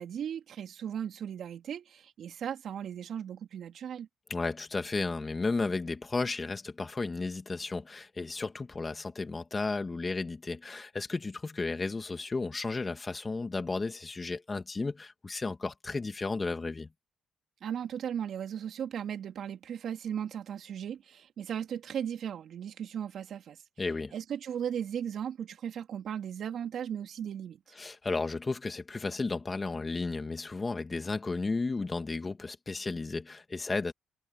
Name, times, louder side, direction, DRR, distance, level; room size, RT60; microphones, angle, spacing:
voice 1, 0.0-4.1 17.6-23.6 24.1-27.8, right 9 dB, 65° right, 3.8 m, -37 dB
voice 2, 4.3-16.9 23.8-24.1 27.7-33.9, left 3 dB, 25° left, 2.4 m, -33 dB
cardioid pair, 90°, 0 cm